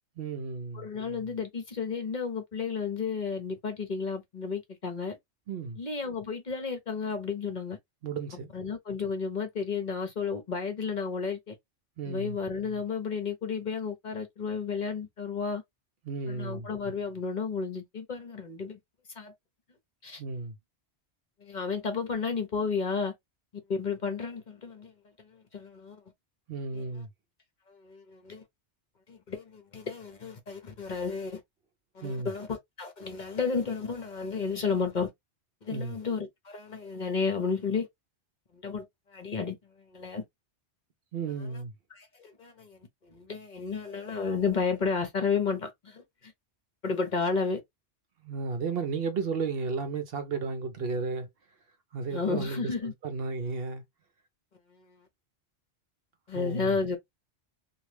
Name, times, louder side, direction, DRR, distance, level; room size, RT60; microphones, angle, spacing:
voice 1, 0.2-0.9 5.5-5.8 8.0-8.6 12.0-12.4 16.0-16.7 20.2-20.5 26.5-27.1 32.0-32.3 35.7-36.0 41.1-41.7 48.2-51.3 51.9-53.8 56.3-56.8, right 4 dB, 60° right, 0.8 m, -33 dB
voice 2, 0.7-5.2 5.8-7.8 8.5-11.5 12.1-15.6 16.3-18.8 19.1-19.3 20.0-20.2 21.4-23.1 23.7-24.9 25.2-26.0 26.7-26.8 27.7-28.4 29.1-31.4 31.9-35.1 35.6-37.9 38.5-40.2 41.5-41.6 41.9-46.3 46.8-47.6 52.1-52.9 54.7-55.0 56.3-57.0, left 5 dB, 45° left, 0.8 m, -32 dB
3.1 x 2.4 x 3.1 m
omnidirectional pair, 1.2 m